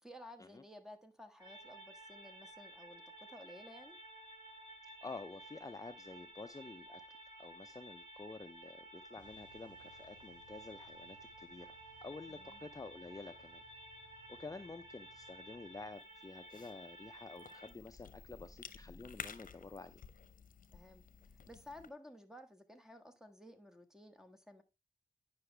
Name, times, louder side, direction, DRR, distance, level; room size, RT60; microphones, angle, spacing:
voice 1, 0.0-3.0 3.3-4.0 12.3-12.6 20.7-21.0 21.5-24.6, left 1 dB, 5° right, 1.5 m, -55 dB
sound 1, 1.4-17.7, right 1 dB, 30° right, 3.3 m, -54 dB
voice 2, 5.0-7.0 7.4-11.8 12.0-13.6 14.4-20.0, left 3 dB, 25° left, 0.5 m, -50 dB
sound 2, 9.2-15.9, right 1 dB, 60° right, 3.4 m, -67 dB
Cough / Chewing mastication, 15.9-21.9, left 6 dB, 65° left, 0.8 m, -53 dB
9.6 x 5.8 x 3.3 m
cardioid pair, 70°, 15 cm